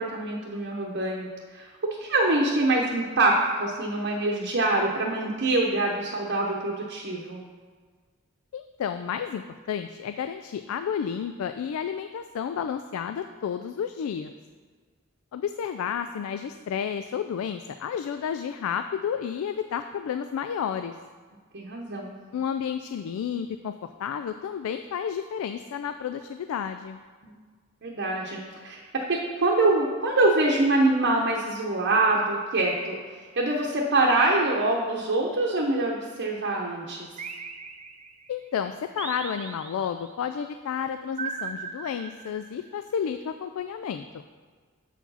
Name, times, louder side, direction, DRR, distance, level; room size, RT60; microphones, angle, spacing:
voice 1, 0.0-7.4 21.5-22.1 27.8-37.1, right 2 dB, 55° right, -1 dB, 0.8 m, -25 dB
voice 2, 8.5-9.4 9.7-14.3 15.3-20.9 22.3-23.7 24.0-27.0 38.3-44.2, left 7 dB, 90° left, 9 dB, 0.3 m, -31 dB
sound 1, 37.2-38.3 39.0-40.1 41.2-42.6, right 5 dB, 35° right, 0.5 m, -38 dB
7.3 x 4.6 x 5.5 m, 1.5 s
head